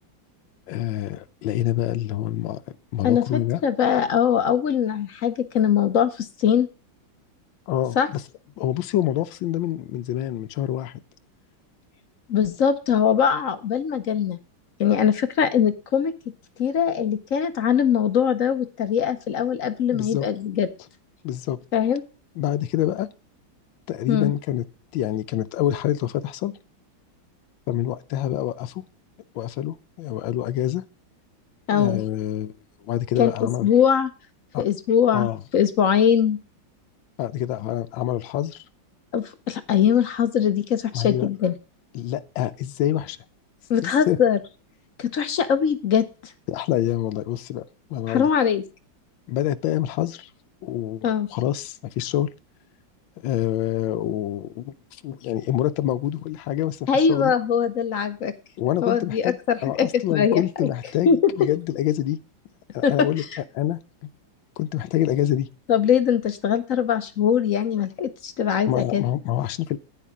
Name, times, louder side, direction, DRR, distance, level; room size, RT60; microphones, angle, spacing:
voice 1, 0.7-3.6 7.7-8.2 8.6-11.0 19.9-20.3 21.2-21.6 22.4-23.1 23.9-24.6 24.9-26.5 27.7-28.8 29.3-30.8 31.7-32.5 32.8-33.7 34.5-34.7 35.1-35.4 37.2-38.6 40.9-41.3 41.9-43.2 43.8-44.2 46.5-48.3 49.3-50.3 50.6-52.3 53.2-57.3 58.6-62.2 62.7-63.2 63.5-63.8 64.6-65.5 68.7-69.8, left 12 dB, 80° left, 10 dB, 1.4 m, -26 dB
voice 2, 3.0-6.7 8.0-8.1 12.3-14.4 14.8-16.1 16.6-20.7 21.7-22.0 24.1-24.3 31.7-32.0 33.2-34.1 34.6-36.4 39.1-41.5 43.7-44.4 45.0-46.0 48.1-48.6 51.0-51.3 56.9-58.3 58.8-60.4 61.1-61.3 62.8-63.1 65.7-69.0, left 8 dB, 60° left, 10 dB, 0.9 m, -21 dB
10.5 x 9.3 x 3.5 m, 0.33 s
omnidirectional pair, 2.1 m